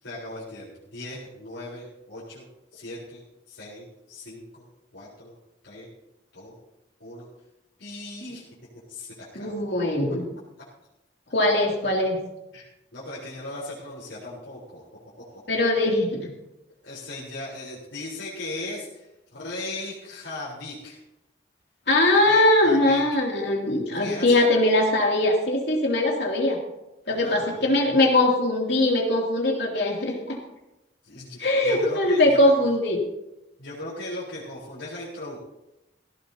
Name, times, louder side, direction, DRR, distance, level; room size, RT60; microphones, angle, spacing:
voice 1, 0.0-2.5 2.7-3.2 3.5-4.6 4.9-5.4 5.6-5.9 6.3-6.6 7.0-7.3 7.8-8.4 8.9-9.7 12.5-12.7 12.9-14.8 16.8-19.1 19.3-21.0 22.2-23.2 23.9-24.5 27.1-27.7 31.0-32.4 33.6-35.4, left 2 dB, 85° left, -8 dB, 4.1 m, -38 dB
voice 2, 9.3-10.2 11.3-12.2 15.5-16.3 21.9-26.6 27.1-30.4 31.4-33.0, left 1 dB, 70° left, -1 dB, 2.8 m, -21 dB
16.5 x 16.0 x 2.9 m, 0.91 s
head